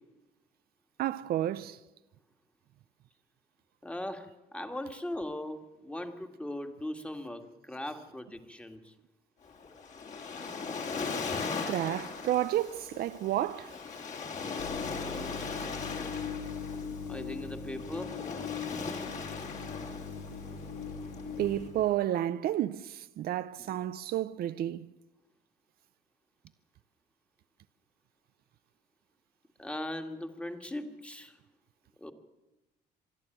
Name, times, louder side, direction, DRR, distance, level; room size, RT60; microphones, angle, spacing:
voice 1, 1.0-1.8 11.7-13.8 21.4-24.9, right 13 dB, 65° right, 0.7 m, -31 dB
voice 2, 3.8-8.9 14.9-15.5 17.1-18.2 23.6-23.7 29.6-31.4 32.0-32.1, left 1 dB, 5° left, 2.0 m, -39 dB
Waves surf, 9.5-21.9, left 4 dB, 45° left, 3.5 m, -39 dB
sound 1, 14.6-21.7, left 5 dB, 75° left, 3.0 m, -40 dB
25.0 x 12.0 x 9.2 m
cardioid pair, 110°, 17 cm